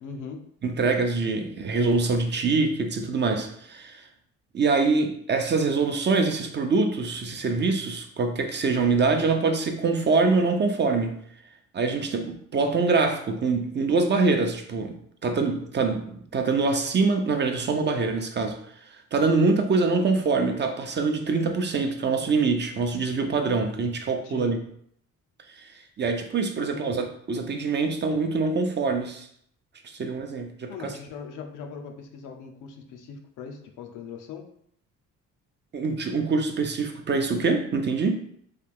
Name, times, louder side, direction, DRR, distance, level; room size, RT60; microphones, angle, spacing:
voice 1, 0.0-0.5 24.2-24.6 26.6-26.9 30.7-34.5, left 5 dB, 85° left, 4 dB, 0.6 m, -40 dB
voice 2, 0.6-4.1 4.5-11.2 11.7-18.6 19.1-24.6 25.6-25.7 26.0-29.3 30.0-30.9 35.7-38.2, right 4 dB, 35° right, 5 dB, 0.5 m, -24 dB
3.2 x 2.4 x 3.5 m, 0.66 s
cardioid pair, 90°, 30 cm